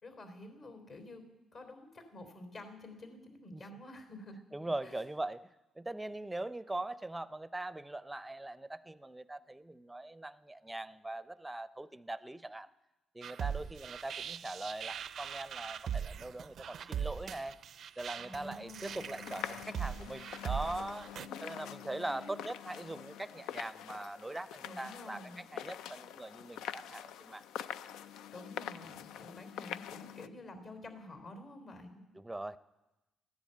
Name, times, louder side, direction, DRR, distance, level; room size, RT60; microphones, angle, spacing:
voice 1, 0.0-1.2 1.5-4.4 4.8-5.0 18.2-18.9 21.2-21.7 22.0-22.4 24.6-25.5 28.3-32.0, left 1 dB, 55° left, 6 dB, 3.5 m, -50 dB
voice 2, 4.5-5.4 5.8-12.7 13.1-17.6 18.0-21.1 21.4-27.5 32.1-32.6, right 2 dB, 10° right, 15 dB, 0.5 m, -41 dB
sound 1, 13.2-21.3, right 8 dB, 65° right, 0.4 m, -40 dB
sound 2, 18.8-30.3, left 10 dB, 85° left, 0.4 m, -45 dB
14.0 x 10.5 x 8.8 m, 1.0 s
cardioid pair, 90°, 0 cm